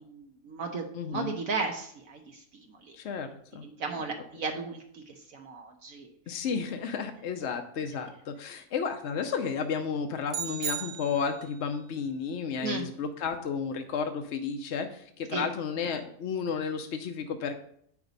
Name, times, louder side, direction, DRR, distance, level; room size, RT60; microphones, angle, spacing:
voice 1, 0.1-2.4 2.8-2.9 3.6-6.1 12.6-12.8 15.3-15.5, right 4 dB, 65° right, 3 dB, 1.1 m, -35 dB
voice 2, 0.9-1.3 2.9-3.7 6.3-17.5, left 6 dB, 60° left, 6 dB, 0.8 m, -32 dB
sound 1, 10.3-11.6, right 9 dB, 85° right, 1.2 m, -36 dB
8.1 x 5.9 x 3.9 m, 0.66 s
omnidirectional pair, 1.6 m